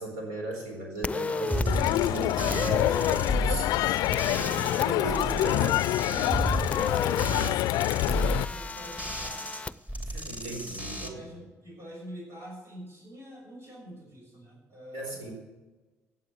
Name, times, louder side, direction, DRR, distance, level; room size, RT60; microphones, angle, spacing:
voice 1, 0.0-5.8 10.1-11.2 14.9-15.3, right 2 dB, 80° right, 2 dB, 4.1 m, -37 dB
sound 1, 1.0-1.7 2.5-3.2 4.1-4.9 6.7-7.3 8.1-9.7, left 4 dB, 20° left, 0.6 m, -34 dB
sound 2, 1.5-4.8 5.1-9.6 9.9-11.1, right 1 dB, 20° right, 3.1 m, -33 dB
Crowd, 1.7-8.4, left 15 dB, 65° left, 0.4 m, -26 dB
voice 2, 4.5-9.5 10.8-15.3, right 1 dB, 45° right, -1 dB, 6.3 m, -46 dB
16.0 x 8.7 x 8.0 m, 1.2 s
hypercardioid pair, 50°, 7 cm